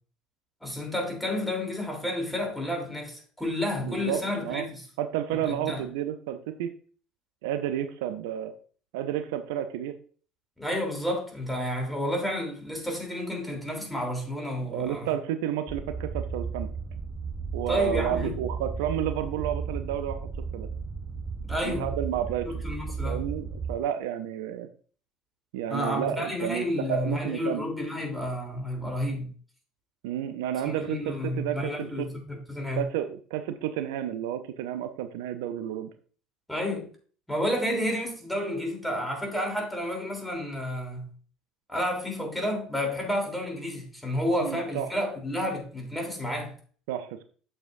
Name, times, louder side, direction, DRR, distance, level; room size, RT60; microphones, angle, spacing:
voice 1, 0.6-4.8 5.6-5.8 10.6-15.1 17.7-18.4 21.5-21.9 22.5-23.2 25.7-29.3 30.6-32.8 36.5-36.9 37.3-41.1 41.7-46.5, left 1 dB, 5° left, 3.3 m, -31 dB
voice 2, 3.8-4.7 5.0-6.7 7.4-8.5 8.9-10.0 14.7-16.7 17.5-20.7 21.6-22.6 23.0-24.7 25.5-27.6 30.0-32.1 32.7-35.9 37.7-37.9 44.4-44.9 46.9-47.2, right 11 dB, 70° right, 0.5 m, -31 dB
sound 1, 15.7-23.8, right 5 dB, 15° right, 0.9 m, -34 dB
8.8 x 6.7 x 2.6 m
figure-of-eight pair, 65°, 0 cm